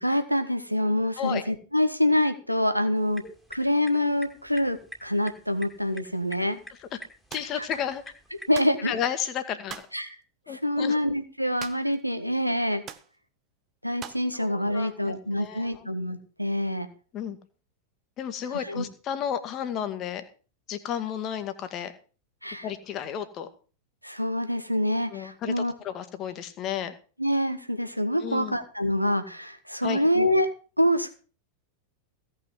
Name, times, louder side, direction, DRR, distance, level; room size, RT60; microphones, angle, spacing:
voice 1, 0.0-3.2 3.5-6.6 7.6-7.7 8.5-8.9 9.9-10.1 10.5-12.8 13.8-16.9 18.5-18.8 22.4-22.7 24.0-25.7 27.2-30.5 30.8-31.1, left 1 dB, 90° right, 7 dB, 1.6 m, -26 dB
sound 1, 3.0-8.6, equal, ahead, 2.1 m, -47 dB
voice 2, 7.3-8.0 8.8-9.8 10.5-11.0 14.3-15.9 17.1-17.4 18.2-20.2 20.7-21.9 22.6-23.5 25.1-26.9 28.2-28.6 29.8-30.0, left 9 dB, 35° left, 9 dB, 1.8 m, -32 dB
sound 2, 7.3-7.5 8.5-8.8 9.7-10.0 11.6-12.0 12.2-12.3 12.8-13.1 14.0-14.3, right 9 dB, 30° right, 1.0 m, -41 dB
16.0 x 6.1 x 7.3 m, 0.38 s
figure-of-eight pair, 90°, 0 cm